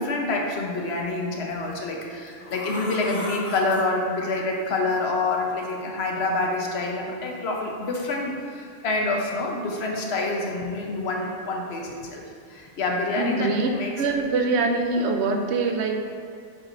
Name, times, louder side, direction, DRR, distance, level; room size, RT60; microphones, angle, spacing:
voice 1, 0.0-12.2 12.5-13.9, left 2 dB, 80° left, 0 dB, 1.1 m, -27 dB
sound 1, 1.5-1.7 2.3-4.4 5.6-5.7 6.5-6.6 7.5-8.1 10.0-10.7 11.0-11.3 11.9-12.1 12.5-12.9, left 2 dB, 35° left, 0.7 m, -38 dB
voice 2, 13.2-13.7 14.0-16.0, right 3 dB, 85° right, 4 dB, 0.9 m, -24 dB
7.3 x 6.1 x 2.6 m, 2.3 s
omnidirectional pair, 1.1 m